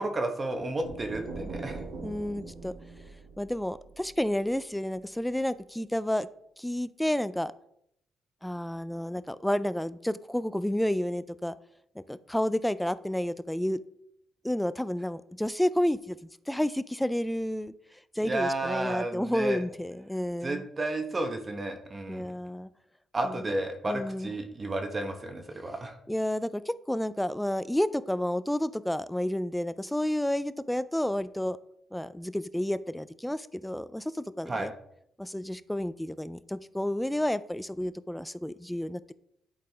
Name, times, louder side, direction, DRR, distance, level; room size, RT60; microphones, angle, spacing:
voice 1, 0.0-1.8 18.2-19.6 20.4-22.3 23.1-26.0 34.5-34.7, right 2 dB, 30° right, 5 dB, 1.1 m, -32 dB
sound 1, 0.8-4.6, right 3 dB, 75° right, 1.7 m, -42 dB
voice 2, 2.0-2.7 3.4-6.3 6.6-7.5 8.4-11.6 12.1-13.8 14.4-16.2 16.5-17.7 18.1-20.7 22.1-22.7 23.2-23.4 23.9-24.3 26.1-31.6 31.9-34.7 35.2-39.1, left 1 dB, 5° left, 16 dB, 0.3 m, -30 dB
10.5 x 4.2 x 3.3 m, 0.73 s
cardioid pair, 90°, 0 cm